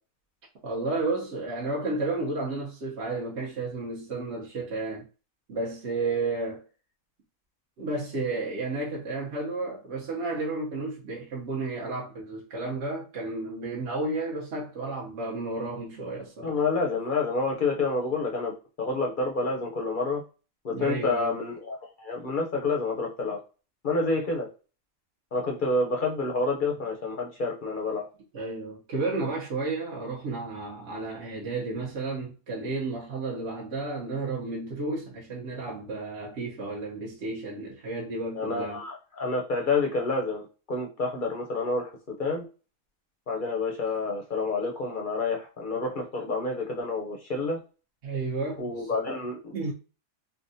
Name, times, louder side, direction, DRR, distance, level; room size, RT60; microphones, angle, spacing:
voice 1, 0.6-5.0 5.5-6.6 7.8-16.6 20.7-21.4 28.3-38.8 48.0-49.1 49.5-49.7, right 3 dB, 60° right, 1.0 m, -32 dB
voice 2, 16.4-18.5 18.8-20.2 20.6-23.4 23.8-24.5 25.3-28.0 38.4-41.9 42.2-42.4 43.3-47.6 48.6-49.7, left 3 dB, 50° left, 0.7 m, -28 dB
3.4 x 2.2 x 2.6 m
omnidirectional pair, 1.4 m